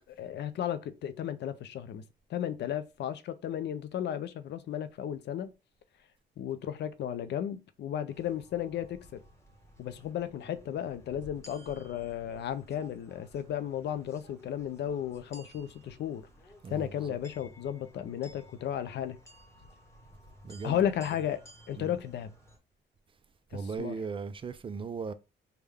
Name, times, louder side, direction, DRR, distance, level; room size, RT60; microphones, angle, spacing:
voice 1, 0.1-2.0 2.3-5.5 6.4-9.2 9.8-16.2 16.7-19.2 20.6-22.3 23.5-23.9, left 10 dB, 60° left, 0.5 m, -34 dB
sound 1, 8.1-22.6, equal, 15° left, 1.0 m, -56 dB
voice 2, 16.6-17.2 20.4-21.2 21.7-22.0 23.5-25.1, right 5 dB, 25° right, 0.4 m, -38 dB
3.5 x 2.2 x 3.4 m
cardioid pair, 90°, 20 cm